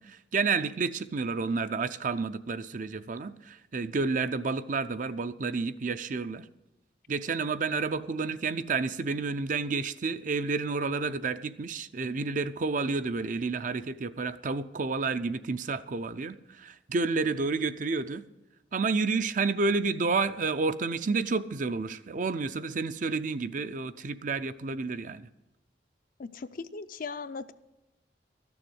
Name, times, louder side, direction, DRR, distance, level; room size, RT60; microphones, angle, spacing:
voice 1, 0.0-6.5 7.1-18.2 18.7-25.3, right 4 dB, 45° right, 12 dB, 0.5 m, -30 dB
voice 2, 26.2-27.5, left 4 dB, 50° left, 12 dB, 0.5 m, -38 dB
13.0 x 7.0 x 7.9 m, 0.98 s
head